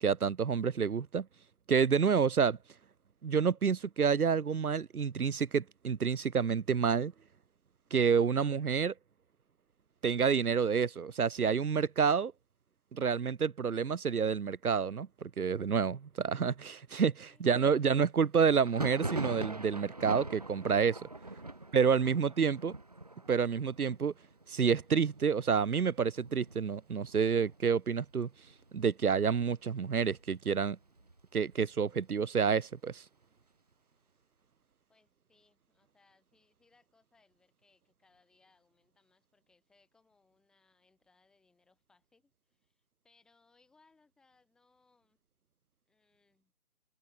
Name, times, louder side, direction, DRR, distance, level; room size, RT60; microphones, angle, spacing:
voice 1, 0.0-1.3 1.7-2.6 3.2-7.1 7.9-8.9 10.0-12.3 12.9-21.0 21.7-22.7 23.3-24.1 24.5-28.3 28.7-30.8 31.3-33.0, right 6 dB, 85° right, 0.8 m, -29 dB
Thunder, 18.6-28.1 28.4-29.1 29.3-30.3 30.7-32.4, right 2 dB, 25° right, 1.0 m, -43 dB
voice 2, 21.4-22.1 34.9-45.2 45.9-46.5, left 3 dB, ahead, 3.7 m, -70 dB
open air
figure-of-eight pair, 165°, 43 cm